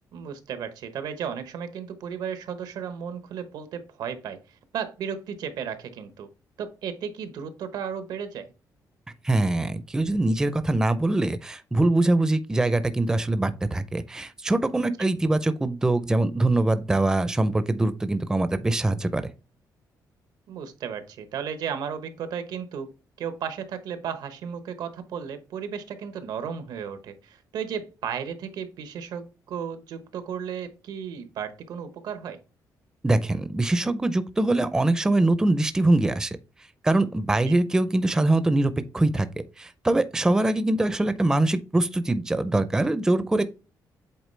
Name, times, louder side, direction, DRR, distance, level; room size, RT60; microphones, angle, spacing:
voice 1, 0.1-6.3 6.6-8.5 15.0-15.1 20.5-22.9 23.2-32.4 37.5-37.6, right 7 dB, 85° right, 1.0 m, -34 dB
voice 2, 9.2-19.3 33.0-36.4 36.8-39.3 39.6-43.4, right 2 dB, 10° right, 0.4 m, -23 dB
8.1 x 3.9 x 3.2 m
cardioid pair, 155°, 7 cm